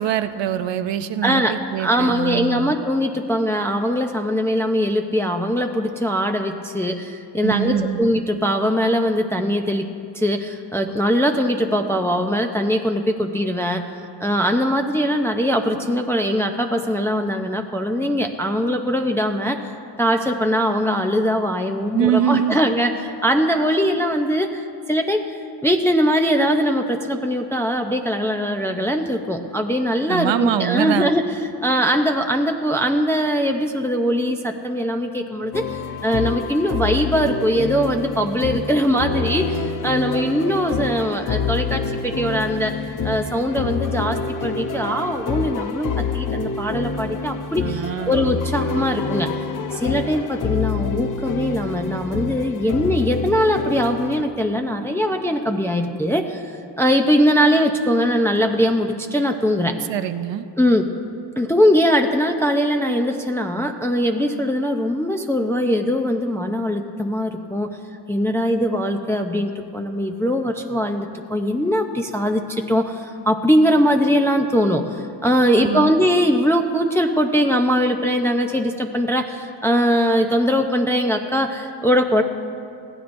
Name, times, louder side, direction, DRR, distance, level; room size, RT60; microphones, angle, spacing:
voice 1, 0.0-2.7 7.4-8.1 21.9-22.6 30.1-31.1 47.6-48.3 59.9-60.5 75.6-76.0, right 10 dB, 75° right, 11 dB, 0.7 m, -23 dB
voice 2, 1.2-9.9 10.1-13.9 14.2-19.6 20.0-31.2 31.6-42.8 43.0-49.3 49.7-59.8 60.6-60.9 61.4-67.7 68.1-82.2, equal, 5° left, 3 dB, 0.5 m, -21 dB
sound 1, 35.5-54.2, left 4 dB, 45° left, 0.7 m, -27 dB
20.5 x 15.5 x 2.6 m, 2.5 s
wide cardioid pair, 115°, 44 cm